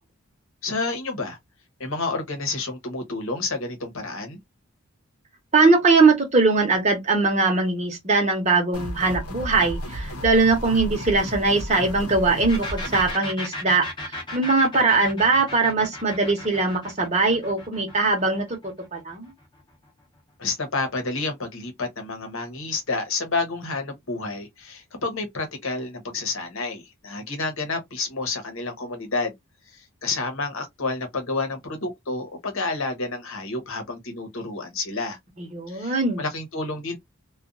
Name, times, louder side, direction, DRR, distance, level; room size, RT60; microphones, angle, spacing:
voice 1, 0.6-1.4 1.8-4.4 20.4-29.3 29.7-35.2 35.7-37.0, left 3 dB, 65° left, 0.9 m, -29 dB
voice 2, 5.5-18.6 18.9-19.3 35.4-36.2, right 3 dB, 30° right, 0.9 m, -21 dB
sound 1, 8.7-13.1, equal, 90° left, 0.8 m, -33 dB
sound 2, 12.5-20.0, left 1 dB, 20° left, 0.8 m, -36 dB
2.5 x 2.3 x 2.4 m
head